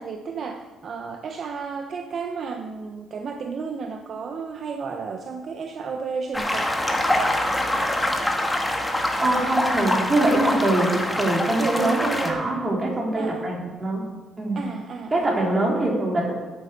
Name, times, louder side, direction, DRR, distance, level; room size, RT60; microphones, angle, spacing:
voice 1, 0.0-6.7 11.6-12.7 13.2-13.5 14.6-15.6, right 5 dB, 55° right, 6 dB, 0.9 m, -32 dB
sound 1, 6.3-12.3, left 1 dB, 10° left, 1.8 m, -24 dB
voice 2, 9.2-14.0 14.4-14.6 15.1-16.3, right 2 dB, 30° right, -2 dB, 4.1 m, -23 dB
9.6 x 9.5 x 6.7 m, 1.3 s
cardioid pair, 90°, 0 cm